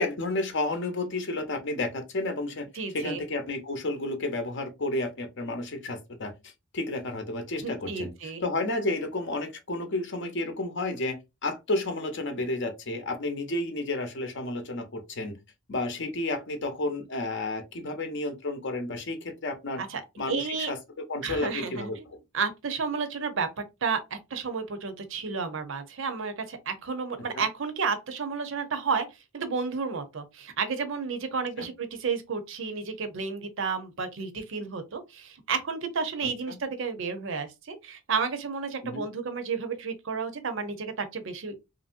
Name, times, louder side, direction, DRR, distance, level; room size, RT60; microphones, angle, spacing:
voice 1, 0.0-2.7 2.9-8.1 8.4-11.2 11.4-15.4 15.7-19.8 20.2-20.8 21.1-22.0 27.3-27.4 31.6-31.7 38.8-39.0, left 2 dB, 55° left, 0.7 m, -31 dB
voice 2, 2.8-3.2 7.6-8.4 19.8-20.7 21.2-22.0 22.3-29.1 29.3-41.6, right 5 dB, 60° right, 0.6 m, -32 dB
3.0 x 2.6 x 2.4 m
head